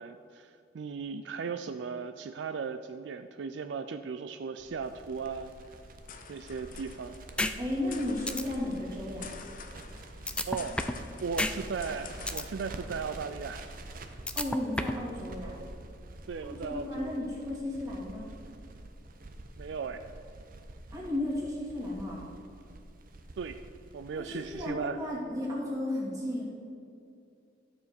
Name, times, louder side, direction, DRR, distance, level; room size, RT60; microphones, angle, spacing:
voice 1, 0.0-5.5 6.3-7.2 10.5-10.9 11.2-13.7 16.3-17.1 19.6-20.0 23.4-23.6 23.9-25.0, right 5 dB, 70° right, 9 dB, 0.4 m, -37 dB
sound 1, 4.6-13.8, left 5 dB, 50° left, 0.7 m, -49 dB
Crackle, 4.8-24.6, right 2 dB, 50° right, 0.7 m, -47 dB
sound 2, 7.4-7.5 7.9-8.0 8.3-8.4 10.3-11.0 11.4-11.5 11.9-12.4 14.3-15.0, left 2 dB, 5° left, 0.4 m, -30 dB
voice 2, 7.6-9.3 14.3-15.6 16.4-18.3 20.9-22.2 24.1-26.4, left 1 dB, 20° right, -5 dB, 2.5 m, -34 dB
12.5 x 7.0 x 4.4 m, 2.5 s
head